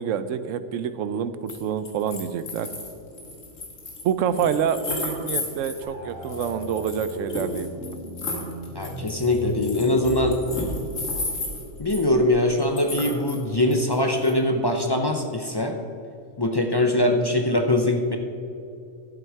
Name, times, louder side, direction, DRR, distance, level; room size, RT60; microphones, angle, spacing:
voice 1, 0.0-2.7 4.0-8.0, right 8 dB, 75° right, 12 dB, 1.0 m, -27 dB
sound 1, 1.5-1.6 1.9-5.8 6.2-12.1 12.6-13.4 13.7-14.3, left 2 dB, 70° left, 2.1 m, -33 dB
sound 2, 5.8-12.5, equal, 35° right, 3.0 m, -38 dB
voice 2, 8.7-10.4 11.8-15.7 16.4-18.2, left 1 dB, 30° left, 3 dB, 0.4 m, -22 dB
12.5 x 7.8 x 4.7 m, 2.6 s
omnidirectional pair, 1.4 m